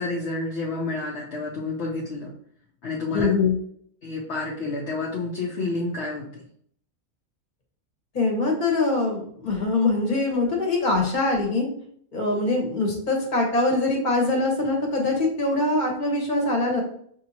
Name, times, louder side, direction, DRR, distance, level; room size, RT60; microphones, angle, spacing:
voice 1, 0.0-2.3 2.8-3.3 4.0-6.4, left 3 dB, 60° left, -3 dB, 0.9 m, -29 dB
voice 2, 3.1-3.5 8.1-11.7 12.1-16.8, left 2 dB, 35° left, 0 dB, 1.1 m, -23 dB
5.4 x 2.7 x 2.8 m, 0.64 s
omnidirectional pair, 1.5 m